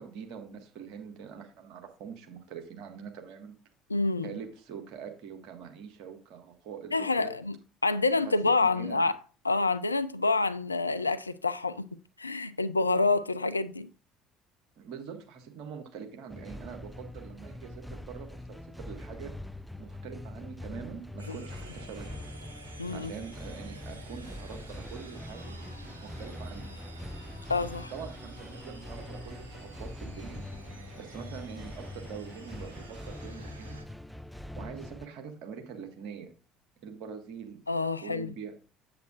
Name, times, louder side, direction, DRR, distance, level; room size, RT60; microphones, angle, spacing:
voice 1, 0.0-3.6 4.2-7.3 8.2-9.1 14.8-19.3 19.8-22.2 22.9-25.5 26.0-26.7 27.9-33.8 34.6-36.3 36.8-37.6 38.0-38.5, right 7 dB, 60° right, 1.6 m, -44 dB
voice 2, 3.9-4.3 6.9-7.6 7.8-9.2 9.4-11.9 12.2-13.9 21.3-21.4 22.8-23.1 27.5-27.9 37.7-38.3, left 3 dB, 90° left, 0.3 m, -27 dB
sound 1, 16.3-35.1, left 1 dB, 5° left, 0.4 m, -43 dB
sound 2, 21.2-33.8, right 3 dB, 85° right, 1.0 m, -51 dB
8.0 x 7.9 x 2.5 m
figure-of-eight pair, 60°, 0 cm